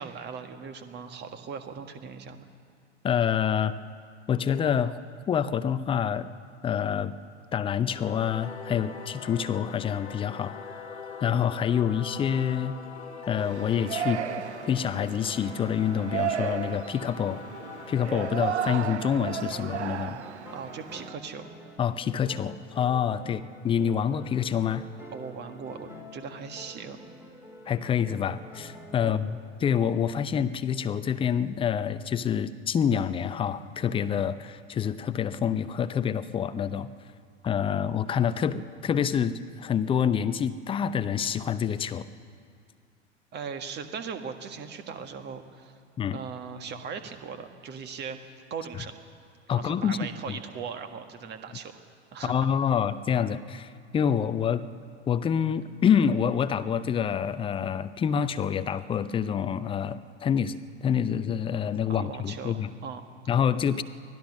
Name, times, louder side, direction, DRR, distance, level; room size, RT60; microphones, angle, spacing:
voice 1, 0.0-2.5 20.5-21.5 23.2-23.5 25.1-27.0 29.0-29.2 43.3-45.8 46.1-48.2 48.5-49.0 49.5-51.8 52.1-52.5 61.9-63.1, right 6 dB, 30° right, 8 dB, 1.7 m, -39 dB
voice 2, 3.0-3.8 4.3-5.0 5.3-6.3 6.6-7.1 7.5-10.5 11.2-12.8 13.3-14.3 14.7-17.4 17.9-20.2 21.8-24.9 27.7-36.9 37.4-42.1 46.0-46.2 49.5-50.0 50.3-50.4 52.2-54.7 55.1-62.7 63.3-63.8, left 8 dB, 15° left, 13 dB, 0.6 m, -27 dB
Singing / Musical instrument, 7.8-20.7, left 6 dB, 60° left, 1.6 m, -43 dB
Yell, 13.4-21.1, right 9 dB, 65° right, 0.9 m, -34 dB
sound 1, 19.2-29.1, left 1 dB, 5° right, 2.3 m, -47 dB
24.5 x 17.0 x 6.5 m, 2.2 s
figure-of-eight pair, 90°, 36 cm